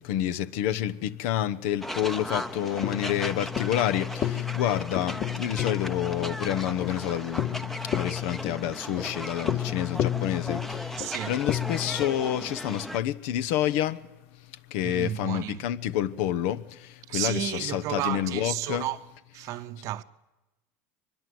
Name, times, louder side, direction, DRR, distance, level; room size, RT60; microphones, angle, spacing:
voice 1, 0.0-14.1 14.3-18.9, left 11 dB, 70° left, 1.0 m, -29 dB
sound 1, 1.8-13.0, equal, 5° left, 0.8 m, -37 dB
sound 2, 2.0-12.1, left 11 dB, 40° left, 1.0 m, -32 dB
voice 2, 11.0-11.4 14.8-15.6 17.1-19.1 19.3-20.0, right 14 dB, 50° right, 0.8 m, -32 dB
23.5 x 21.0 x 7.8 m
supercardioid pair, 145°, 7 cm